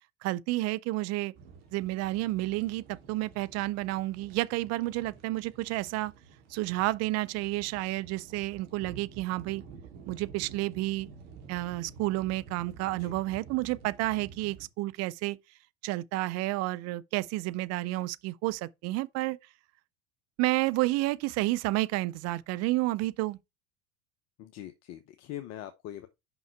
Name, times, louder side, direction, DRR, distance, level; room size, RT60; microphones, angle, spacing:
voice 1, 0.2-1.3 1.7-6.1 6.5-9.6 10.1-11.1 11.5-15.4 15.8-19.4 20.4-23.4, right 18 dB, 45° right, 0.6 m, -30 dB
sound 1, 1.3-14.7, right 5 dB, 60° right, 2.2 m, -50 dB
voice 2, 24.4-26.1, left 12 dB, 45° left, 0.9 m, -42 dB
5.9 x 5.5 x 4.6 m
hypercardioid pair, 80°, 35 cm